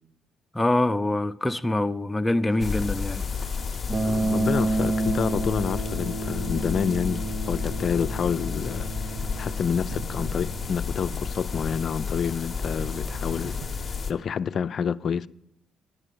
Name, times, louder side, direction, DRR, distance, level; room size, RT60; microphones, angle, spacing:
voice 1, 0.5-3.3, left 1 dB, 10° left, 0.6 m, -24 dB
sound 1, 2.5-13.7, right 3 dB, 60° right, 1.2 m, -46 dB
sound 2, 2.6-14.1, left 6 dB, 40° left, 0.9 m, -32 dB
sound 3, 3.9-14.0, right 2 dB, 35° right, 0.8 m, -32 dB
voice 2, 4.0-8.9 9.4-13.6 13.9-15.3, left 7 dB, 55° left, 0.4 m, -28 dB
10.5 x 8.9 x 8.4 m
cardioid pair, 90°, 0 cm